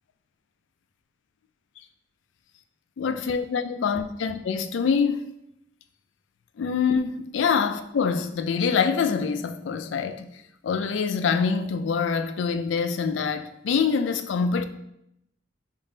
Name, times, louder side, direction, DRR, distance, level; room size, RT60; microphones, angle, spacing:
voice 1, 3.0-5.3 6.6-10.3 10.6-14.6, left 6 dB, 75° left, 0.3 m, -25 dB
4.8 x 3.6 x 2.7 m
head